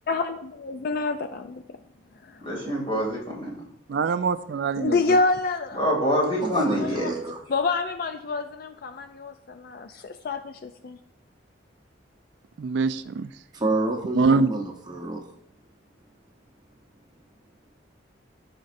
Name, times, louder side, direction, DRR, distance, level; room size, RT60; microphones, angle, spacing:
voice 1, 0.1-1.6 2.2-2.4 4.7-5.8 6.7-7.1 7.5-11.0, left 3 dB, 50° left, 8 dB, 0.4 m, -27 dB
voice 2, 2.4-3.6 5.7-7.1, equal, 25° left, -3 dB, 2.5 m, -26 dB
voice 3, 3.9-5.0 12.6-13.3 14.1-14.5, right 4 dB, 60° right, 12 dB, 0.3 m, -23 dB
voice 4, 6.4-7.4 13.5-15.2, right 2 dB, 20° right, 0 dB, 0.8 m, -28 dB
14.5 x 5.2 x 2.6 m, 0.76 s
head